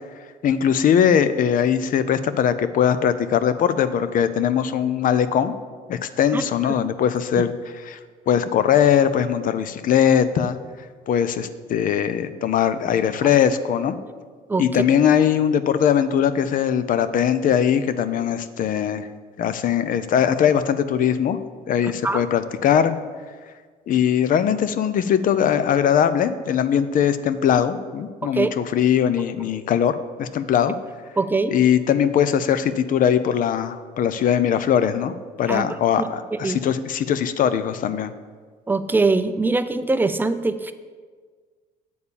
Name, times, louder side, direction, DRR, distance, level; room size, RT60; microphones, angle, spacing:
voice 1, 0.4-5.5 5.9-8.0 8.3-10.6 11.1-13.9 14.6-19.1 19.4-21.4 21.7-23.0 23.9-30.7 31.5-35.1 35.4-38.1, left 8 dB, 55° left, 13 dB, 0.6 m, -20 dB
voice 2, 6.3-6.7 14.5-14.6 22.0-22.3 28.3-28.5 31.2-31.6 35.5-35.6 36.4-36.6 38.7-40.7, right 3 dB, 10° right, 11 dB, 0.4 m, -22 dB
8.4 x 4.3 x 6.9 m, 1.5 s
cardioid pair, 110°, 17 cm